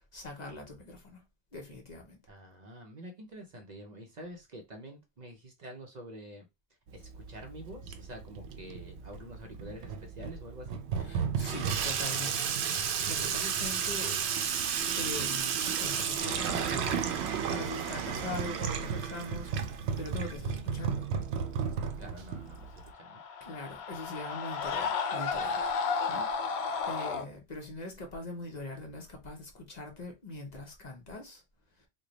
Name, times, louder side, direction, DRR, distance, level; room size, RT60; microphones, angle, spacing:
voice 1, 0.1-1.2 1.5-2.2 11.0-14.2 14.5-14.7 14.9-21.1 23.4-25.6 26.1-26.5 26.9-31.4 31.8-31.9, left 2 dB, 45° left, 0.8 m, -42 dB
voice 2, 2.3-6.5 6.9-10.7 17.9-18.1 22.0-23.2, right 1 dB, 50° right, 0.6 m, -47 dB
Water tap faucet / Sink (filling or washing), 6.9-22.9, right 7 dB, 80° right, 0.8 m, -33 dB
Screaming, 22.8-27.3, left 5 dB, 80° left, 0.8 m, -33 dB
3.1 x 2.2 x 3.8 m
omnidirectional pair, 1.1 m